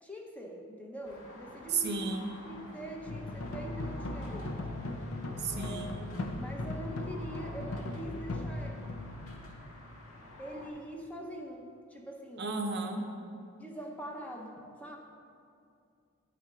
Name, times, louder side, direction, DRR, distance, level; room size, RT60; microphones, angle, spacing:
voice 1, 0.0-2.0 2.4-4.6 5.5-8.8 10.4-12.4 13.5-15.0, equal, 5° left, 0 dB, 0.7 m, -44 dB
sound 1, 1.0-10.7, left 1 dB, 85° left, 1.5 m, -50 dB
voice 2, 1.7-2.3 5.4-6.0 12.4-13.1, right 4 dB, 50° right, 3 dB, 0.7 m, -33 dB
sound 2, 3.1-10.3, left 2 dB, 70° left, 0.6 m, -38 dB
10.5 x 4.3 x 4.9 m, 2.5 s
head